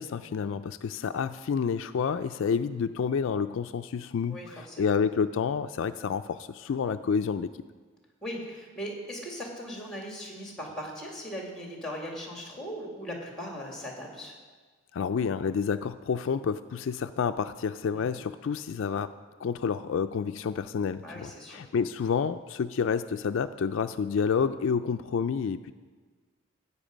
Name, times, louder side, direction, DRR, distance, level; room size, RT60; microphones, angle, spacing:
voice 1, 0.0-7.6 14.9-19.1 19.4-25.7, left 6 dB, 65° left, 10 dB, 0.3 m, -29 dB
voice 2, 4.3-4.8 8.2-14.3 17.9-18.1 21.0-21.7, equal, ahead, 0 dB, 2.0 m, -39 dB
14.0 x 8.5 x 5.1 m, 1.4 s
head